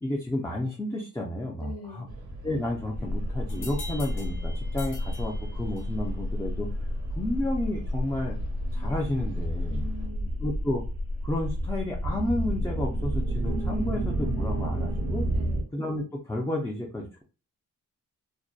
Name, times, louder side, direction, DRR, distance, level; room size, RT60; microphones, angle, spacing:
voice 1, 0.0-2.0 2.4-6.7 7.2-8.4 8.7-9.9 10.4-10.8 11.2-15.3 15.7-17.2, left 1 dB, 10° left, -2 dB, 0.4 m, -31 dB
voice 2, 1.6-2.2 9.7-10.3 13.8-13.9 15.3-15.7, left 4 dB, 55° left, 4 dB, 0.6 m, -42 dB
sound 1, 2.1-10.1, equal, 85° right, 1.0 m, -42 dB
sound 2, 2.9-15.6, equal, 60° right, 0.6 m, -30 dB
sound 3, 3.5-6.1, left 3 dB, 85° left, 1.0 m, -45 dB
2.6 x 2.1 x 2.3 m, 0.35 s
wide cardioid pair, 120°, 30 cm